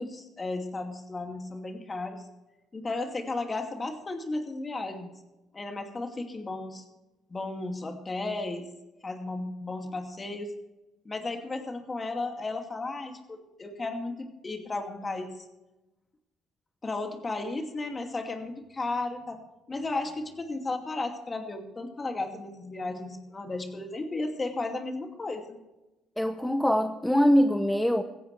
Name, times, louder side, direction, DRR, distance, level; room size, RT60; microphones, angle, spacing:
voice 1, 0.0-2.3 2.7-5.2 5.5-6.8 7.3-8.7 9.0-10.5 11.0-15.4 16.8-19.4 19.7-25.6, left 2 dB, 30° left, 4 dB, 2.5 m, -34 dB
voice 2, 26.2-28.0, equal, 5° left, 8 dB, 0.9 m, -23 dB
16.0 x 16.0 x 3.4 m, 1.0 s
supercardioid pair, 75°, 0 cm